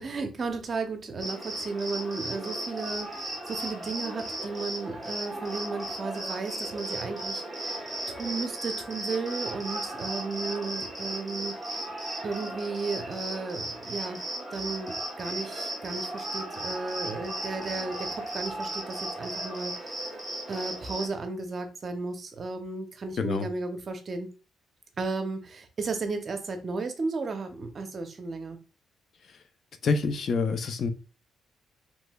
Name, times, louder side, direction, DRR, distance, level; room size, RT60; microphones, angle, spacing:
voice 1, 0.0-11.9 12.2-14.2 14.5-20.0 20.5-24.3 25.0-28.6, right 3 dB, 45° right, 0.6 m, -34 dB
Cricket, 1.2-21.1, right 1 dB, 10° right, 1.4 m, -36 dB
voice 2, 29.8-30.9, left 4 dB, 55° left, 0.5 m, -26 dB
3.1 x 3.0 x 2.2 m
cardioid pair, 90°, 0 cm